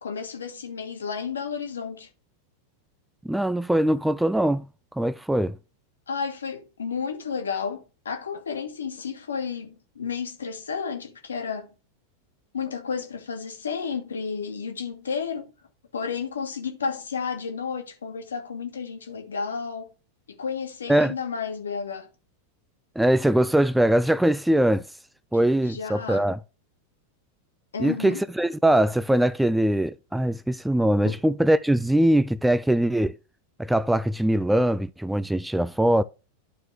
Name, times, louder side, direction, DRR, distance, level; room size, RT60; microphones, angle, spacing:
voice 1, 0.0-2.1 6.1-11.7 12.5-15.5 15.9-19.9 20.3-22.1 25.6-26.3 27.7-28.2 31.0-31.1, left 6 dB, 70° left, 1.5 m, -32 dB
voice 2, 3.2-4.7 4.9-5.6 20.9-21.1 23.0-24.9 25.3-26.4 27.8-33.2 33.6-36.0, right 1 dB, 5° right, 0.3 m, -22 dB
11.5 x 4.5 x 3.3 m
figure-of-eight pair, 90°, 0 cm